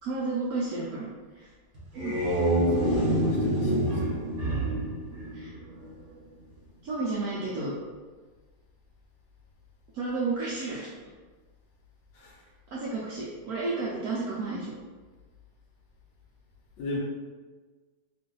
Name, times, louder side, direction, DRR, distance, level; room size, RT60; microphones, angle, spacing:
voice 1, 0.0-1.5 1.9-2.2 5.3-5.5 6.8-7.7 9.9-10.9 12.7-14.7, right 3 dB, 70° right, -6 dB, 0.9 m, -32 dB
sound 1, 1.8-6.0, right 1 dB, 45° right, 1.3 m, -27 dB
voice 2, 2.7-4.2 12.1-12.5 16.8-17.0, left 1 dB, 80° left, -4 dB, 1.3 m, -38 dB
3.0 x 2.5 x 3.8 m, 1.4 s
omnidirectional pair, 2.0 m